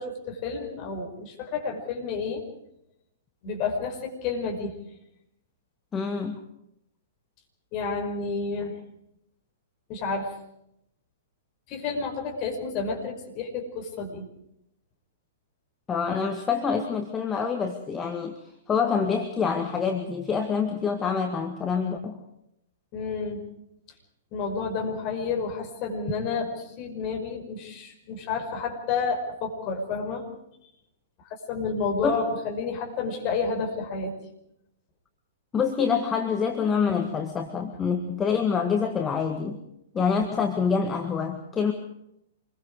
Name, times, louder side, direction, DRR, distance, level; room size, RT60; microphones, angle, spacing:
voice 1, 0.0-2.4 3.4-4.8 7.7-8.7 9.9-10.3 11.7-14.3 22.9-23.4 24.3-30.2 31.3-34.1, left 4 dB, 35° left, 2 dB, 5.5 m, -30 dB
voice 2, 5.9-6.4 15.9-18.4 18.7-22.2 32.0-32.2 35.5-39.6 39.9-41.7, left 6 dB, 15° left, 4 dB, 1.9 m, -26 dB
27.0 x 22.5 x 4.9 m, 0.79 s
figure-of-eight pair, 110°, 0 cm